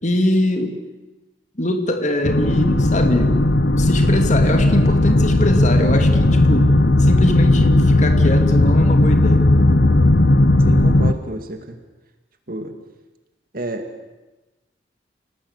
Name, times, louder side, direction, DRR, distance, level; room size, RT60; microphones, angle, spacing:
voice 1, 0.0-0.8 1.6-3.4 3.8-6.7 7.0-9.4, left 1 dB, 40° left, 5 dB, 2.8 m, -22 dB
sound 1, 2.2-11.1, left 2 dB, 65° left, 1.1 m, -15 dB
voice 2, 10.7-11.8 12.5-12.7 13.5-13.9, right 1 dB, 50° right, 6 dB, 2.3 m, -30 dB
28.5 x 18.5 x 8.3 m, 1.1 s
head